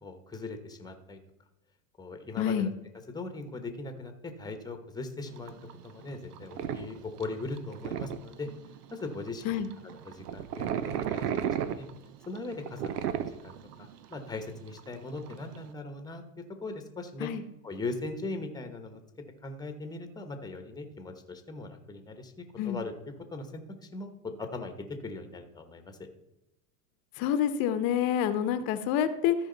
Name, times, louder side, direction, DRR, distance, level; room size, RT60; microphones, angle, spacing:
voice 1, 0.0-1.2 2.0-2.7 3.1-5.5 5.8-8.5 8.9-9.6 10.0-11.9 12.3-12.8 13.1-17.3 17.6-19.0 19.4-22.9 23.3-26.1, left 3 dB, 10° left, 7 dB, 1.1 m, -39 dB
voice 2, 2.4-2.7 9.4-9.7 17.2-17.4 22.6-22.8 27.2-29.4, left 9 dB, 50° left, 11 dB, 0.9 m, -27 dB
sound 1, 5.3-15.7, right 9 dB, 85° right, 0.8 m, -35 dB
14.0 x 5.0 x 4.0 m, 0.92 s
supercardioid pair, 115°, 46 cm